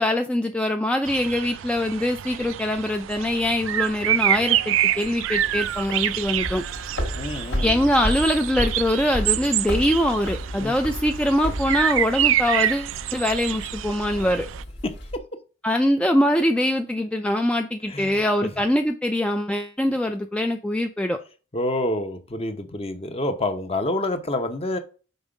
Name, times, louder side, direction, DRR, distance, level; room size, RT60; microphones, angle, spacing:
voice 1, 0.0-6.6 7.6-14.5 15.6-21.2, left 1 dB, 5° left, 0.4 m, -23 dB
sound 1, 1.1-14.6, right 12 dB, 85° right, 0.3 m, -27 dB
sound 2, 5.2-15.2, equal, 65° left, 1.5 m, -32 dB
voice 2, 7.1-7.9 10.6-10.7 14.8-15.2 17.9-18.1 21.5-24.8, left 1 dB, 30° left, 0.8 m, -28 dB
5.4 x 4.4 x 5.0 m
head